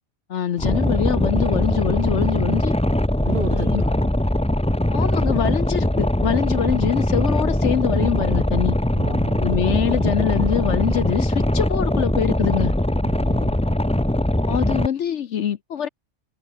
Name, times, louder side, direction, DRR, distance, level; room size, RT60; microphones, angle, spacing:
voice 1, 0.3-2.7 3.5-3.8 4.9-8.8 9.4-12.7 14.5-15.9, left 9 dB, 65° left, 1.1 m, -24 dB
Boat Water vehicle, 0.6-14.9, left 1 dB, 5° left, 1.0 m, -21 dB
voice 2, 3.2-4.1 8.9-9.7 13.0-13.7, right 1 dB, 40° right, 6.7 m, -33 dB
omnidirectional pair, 1.4 m